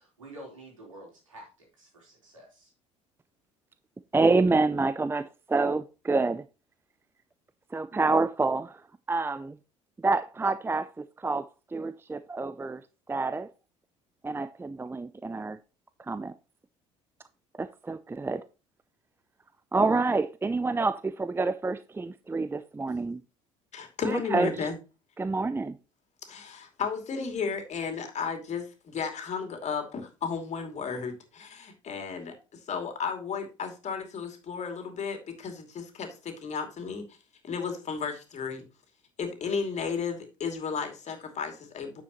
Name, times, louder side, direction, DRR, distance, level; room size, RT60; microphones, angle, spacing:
voice 1, 0.0-2.7, right 1 dB, 90° right, 3.8 m, -49 dB
voice 2, 4.1-6.4 7.7-8.8 9.1-9.6 10.0-12.8 13.1-13.5 14.2-15.6 16.1-16.3 17.6-18.4 19.7-23.2 24.0-24.5 25.2-25.8, right 3 dB, 15° right, 0.5 m, -27 dB
voice 3, 23.7-24.7 26.3-32.3 32.7-37.0 37.4-38.6 39.2-42.0, left 5 dB, 45° left, 2.7 m, -33 dB
9.7 x 7.0 x 3.0 m
hypercardioid pair, 60°, 16 cm